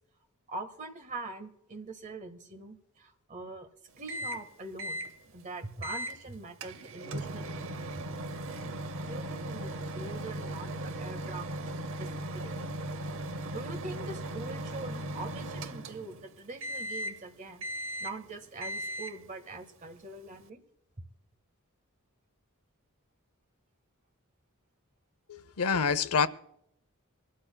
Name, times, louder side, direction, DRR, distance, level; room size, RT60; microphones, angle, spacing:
voice 1, 0.5-3.7 4.0-5.1 5.3-7.6 7.9-8.0 9.0-12.8 13.5-17.6 18.0-20.6, right 2 dB, 35° right, 1.5 m, -43 dB
Microwave oven, 4.1-4.5 4.8-5.1 5.8-6.2 6.6-16.2 16.6-17.2 17.6-18.3 18.6-19.2, right 1 dB, 60° right, 0.8 m, -37 dB
voice 2, 25.3-26.3, left 6 dB, 85° left, 0.7 m, -27 dB
24.5 x 12.5 x 2.3 m
head